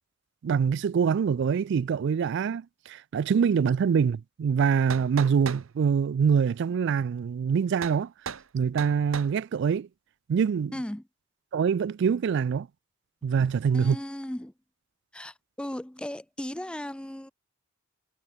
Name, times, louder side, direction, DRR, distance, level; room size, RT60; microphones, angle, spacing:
voice 1, 0.4-8.1 8.5-9.9 10.3-10.7 11.5-12.7 13.2-14.0, right 6 dB, 60° right, 0.3 m, -25 dB
sound 1, 4.6-5.7 7.8-8.0 8.3-8.5 8.8-9.3, right 6 dB, 85° right, 1.0 m, -37 dB
voice 2, 10.7-11.0 13.7-14.5 15.1-17.3, left 1 dB, 5° left, 0.4 m, -36 dB
head